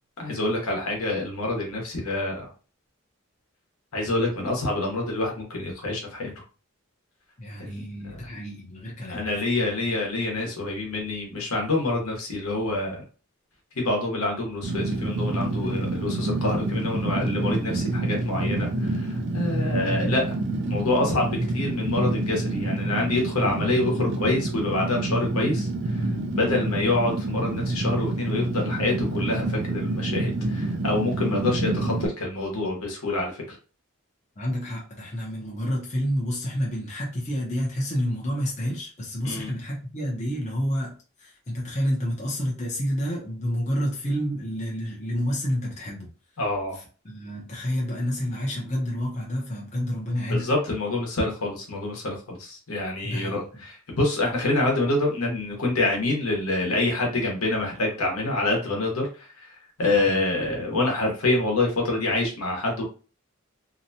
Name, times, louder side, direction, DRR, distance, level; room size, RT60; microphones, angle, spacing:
voice 1, 0.2-2.5 3.9-6.3 7.6-7.8 8.1-8.3 9.1-13.0 13.7-20.4 20.7-25.7 26.0-33.6 39.2-39.5 46.4-46.8 50.3-62.8, left 2 dB, 80° left, -1 dB, 1.0 m, -26 dB
voice 2, 7.4-9.2 34.4-40.9 41.2-46.1 47.0-50.5 53.0-53.4 60.1-60.2, equal, 30° left, -2 dB, 0.6 m, -29 dB
Fire, 14.6-32.1, right 2 dB, 55° right, 0.4 m, -27 dB
2.8 x 2.2 x 2.7 m, 0.36 s
head